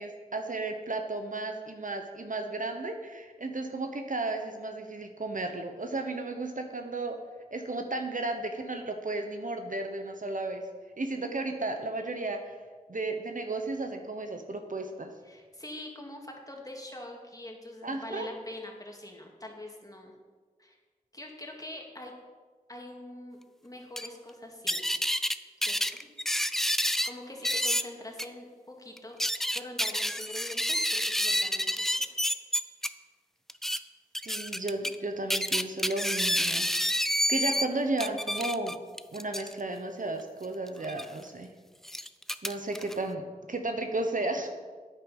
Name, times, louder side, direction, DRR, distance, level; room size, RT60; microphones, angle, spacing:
voice 1, 0.0-7.2 7.5-10.6 11.0-12.6 12.9-15.1 17.8-18.3 34.2-36.7 37.3-38.8 39.1-41.5 42.4-44.5, right 2 dB, 60° right, 5 dB, 1.0 m, -34 dB
voice 2, 15.2-20.1 20.6-20.8 21.1-22.1 22.7-25.2 25.6-26.1 26.7-29.2 29.5-32.2, left 1 dB, 25° left, 0 dB, 2.0 m, -44 dB
sound 1, 24.0-24.1 24.7-25.4 25.6-27.1 27.4-27.8 28.2-28.3 29.0-32.9 33.5-33.8 34.1-35.0 35.3-37.7 38.0-39.5 40.8-41.1 41.8-42.9, equal, ahead, 0.4 m, -29 dB
9.3 x 7.9 x 5.5 m, 1.5 s
wide cardioid pair, 45°, 15 cm